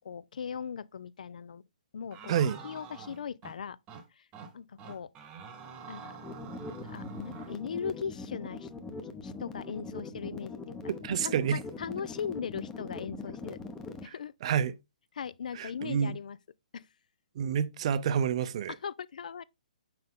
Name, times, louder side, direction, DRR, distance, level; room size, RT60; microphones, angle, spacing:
voice 1, 0.0-1.6 1.9-2.3 2.6-3.8 4.1-4.3 4.5-5.1 5.9-6.2 6.8-8.7 9.2-10.9 11.2-13.6 14.0-14.3 15.1-16.4 16.7-16.9 18.7-19.4, left 7 dB, 70° left, 0.4 m, -39 dB
sound 1, 2.1-3.6 3.9-4.0 4.3-4.5 4.8-7.6, right 5 dB, 20° right, 1.0 m, -46 dB
voice 2, 2.3-2.6 10.9-11.6 14.0-14.1 14.4-14.7 15.5-16.2 17.4-18.7, right 8 dB, 50° right, 0.6 m, -29 dB
sound 2, 6.2-14.1, left 3 dB, 10° left, 0.7 m, -42 dB
5.8 x 5.2 x 3.6 m
hypercardioid pair, 145°, 4 cm